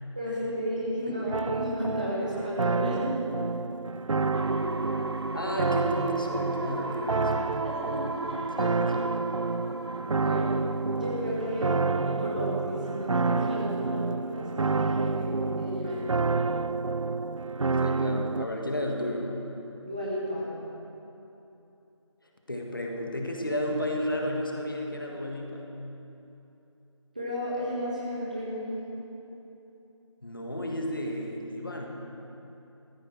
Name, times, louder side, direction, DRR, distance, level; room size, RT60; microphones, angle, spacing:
voice 1, 0.1-3.1 7.6-8.4 10.2-16.0 19.8-20.5 27.1-29.0, equal, 15° right, -7 dB, 1.2 m, -33 dB
sound 1, 1.3-18.4, right 3 dB, 85° right, 0.4 m, -29 dB
sound 2, 4.3-12.0 12.4-12.5, right 2 dB, 55° right, 0.8 m, -36 dB
voice 2, 5.3-7.6 8.6-9.1 17.8-19.3 22.5-25.7 30.2-31.9, left 1 dB, 45° left, 0 dB, 1.7 m, -33 dB
14.5 x 14.5 x 4.6 m, 3.0 s
figure-of-eight pair, 175°, 16 cm